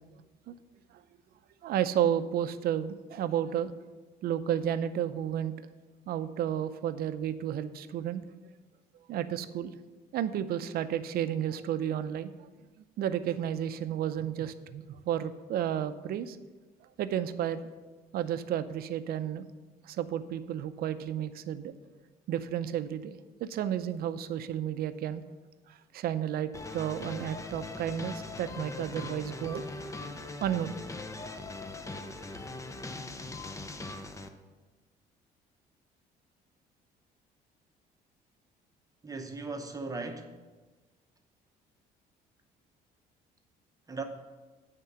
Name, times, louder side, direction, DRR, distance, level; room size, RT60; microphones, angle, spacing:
voice 1, 1.6-3.7 4.2-5.5 6.1-8.2 9.1-9.7 10.1-12.5 13.0-16.4 17.0-17.6 18.1-19.5 19.8-21.7 22.3-25.2 25.9-29.7 30.4-30.7, right 10 dB, 65° right, 12 dB, 0.6 m, -32 dB
sound 1, 26.5-34.3, left 3 dB, 20° left, 0.6 m, -41 dB
voice 2, 39.0-40.3 43.9-44.0, right 3 dB, 20° right, 4 dB, 0.8 m, -37 dB
9.4 x 3.7 x 6.8 m, 1.2 s
cardioid pair, 110°, 17 cm